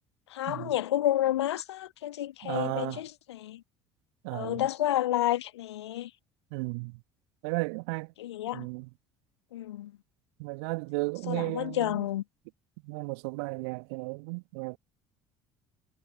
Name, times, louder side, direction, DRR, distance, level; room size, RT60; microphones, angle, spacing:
voice 1, 0.3-3.6 4.3-6.1 8.2-8.7 9.5-9.9 11.3-12.2, left 13 dB, 70° left, 1.3 m, -30 dB
voice 2, 2.4-3.0 4.2-4.7 6.5-7.0 7.4-8.1 8.5-8.9 10.4-12.0 12.8-14.8, right 30 dB, 65° right, 1.8 m, -34 dB
figure-of-eight pair, 60°, 14 cm